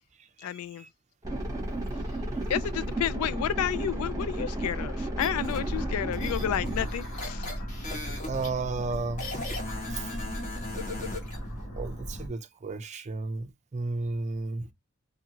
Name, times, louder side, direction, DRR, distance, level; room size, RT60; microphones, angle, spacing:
voice 1, 0.4-0.9 2.5-7.4, left 10 dB, 90° left, 0.3 m, -31 dB
sound 1, 1.2-6.9, right 1 dB, 15° right, 0.9 m, -32 dB
sound 2, 5.2-5.6 6.1-8.5 9.2-11.4, left 3 dB, 35° left, 1.1 m, -38 dB
sound 3, 5.3-12.3, equal, 75° left, 1.3 m, -37 dB
voice 2, 8.3-9.3 9.9-10.2 11.7-14.7, right 3 dB, 35° right, 0.4 m, -33 dB
2.7 x 2.7 x 2.8 m
head